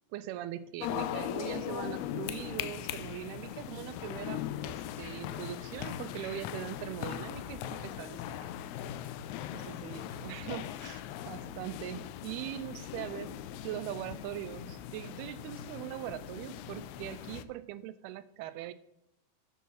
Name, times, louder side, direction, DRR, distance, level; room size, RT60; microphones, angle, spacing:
voice 1, 0.1-8.6 9.5-13.4 13.6-18.7, right 13 dB, 80° right, 15 dB, 2.4 m, -41 dB
sound 1, 0.8-17.5, left 12 dB, 85° left, 2.6 m, -40 dB
sound 2, 3.4-11.2, left 3 dB, 60° left, 2.6 m, -60 dB
12.0 x 4.7 x 5.8 m, 0.81 s
omnidirectional pair, 4.7 m